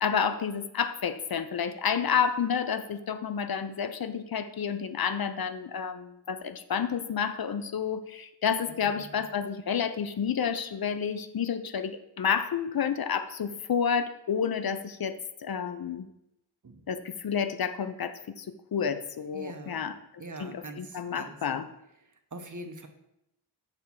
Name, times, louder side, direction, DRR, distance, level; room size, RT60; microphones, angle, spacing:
voice 1, 0.0-16.1 16.9-19.9 20.4-21.6, left 7 dB, 60° left, 11 dB, 0.5 m, -30 dB
voice 2, 8.7-9.1 16.6-16.9 19.3-19.9 20.2-21.4 22.0-22.9, right 2 dB, 45° right, 6 dB, 0.8 m, -43 dB
6.5 x 3.5 x 5.7 m, 0.83 s
wide cardioid pair, 65°, 42 cm